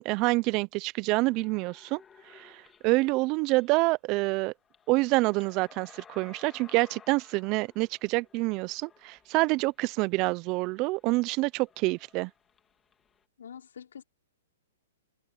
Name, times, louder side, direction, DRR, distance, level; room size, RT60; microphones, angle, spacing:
voice 1, 0.0-2.0 2.3-4.5 4.9-12.3, right 24 dB, 35° right, 0.7 m, -27 dB
sound 1, 1.2-3.8 4.1-4.2 4.6-13.2, left 7 dB, 15° left, 3.9 m, -57 dB
voice 2, 13.4-14.0, left 8 dB, 75° left, 3.9 m, -45 dB
hypercardioid pair, 130°, 0 cm